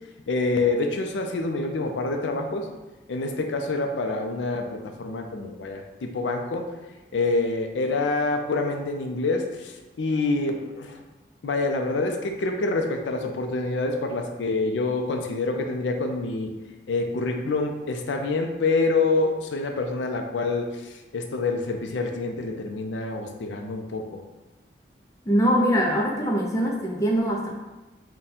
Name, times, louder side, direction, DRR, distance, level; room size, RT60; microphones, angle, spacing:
voice 1, 0.3-2.7 3.1-6.7 7.1-11.0 11.4-16.5 16.9-24.2, left 3 dB, 85° left, 4 dB, 0.4 m, -26 dB
voice 2, 25.3-27.5, equal, 20° left, -1 dB, 0.4 m, -22 dB
3.6 x 2.2 x 4.1 m, 1.1 s
head